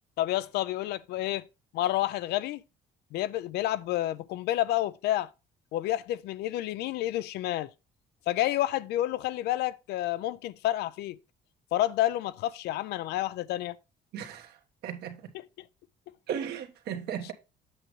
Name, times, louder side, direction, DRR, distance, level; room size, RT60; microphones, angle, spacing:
voice 1, 0.2-1.5 1.7-2.6 3.1-5.3 5.7-7.7 8.3-11.2 11.7-13.8 15.6-15.7, left 14 dB, 80° left, 0.4 m, -29 dB
voice 2, 14.1-15.3 16.3-17.3, right 8 dB, 75° right, 1.2 m, -36 dB
7.9 x 6.1 x 3.1 m
cardioid pair, 110°, 17 cm